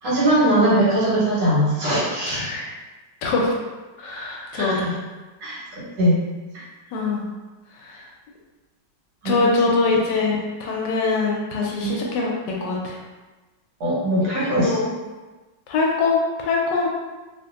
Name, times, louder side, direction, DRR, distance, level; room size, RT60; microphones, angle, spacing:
voice 1, 0.0-2.4 4.5-4.8 5.4-6.2 6.5-6.6 9.2-9.5 13.8-14.8, right 1 dB, 70° right, -7 dB, 1.6 m, -20 dB
voice 2, 2.3-2.7 3.2-3.5 4.0-4.9 6.9-7.2 7.7-8.1 9.2-12.3 12.6-13.0 14.6-14.9 15.7-16.9, left 3 dB, 75° left, -2 dB, 1.2 m, -23 dB
3.0 x 2.6 x 2.4 m, 1.2 s
omnidirectional pair, 2.0 m